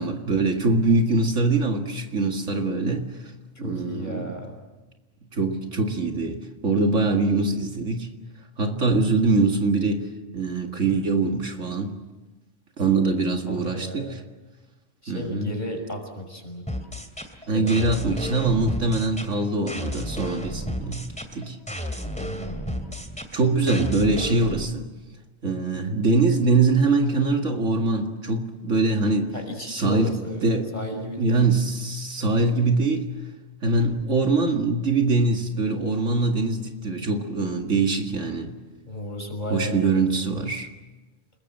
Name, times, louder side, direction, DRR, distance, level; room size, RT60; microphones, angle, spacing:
voice 1, 0.0-3.1 3.6-4.4 5.3-8.1 8.6-11.9 12.8-14.2 15.1-15.5 17.5-21.1 21.3-21.6 23.3-24.9 25.4-29.3 29.7-30.2 30.4-33.1 33.6-38.6 39.5-40.7, right 3 dB, 65° right, 3 dB, 2.4 m, -23 dB
voice 2, 3.6-4.6 13.5-14.2 15.0-16.7 17.5-17.8 22.2-22.7 29.3-30.4 30.7-31.5 38.9-40.1, equal, 35° left, 3 dB, 6.1 m, -34 dB
sound 1, 16.7-24.7, equal, 5° left, 2.5 m, -33 dB
30.0 x 21.0 x 7.5 m, 1.2 s
omnidirectional pair, 1.4 m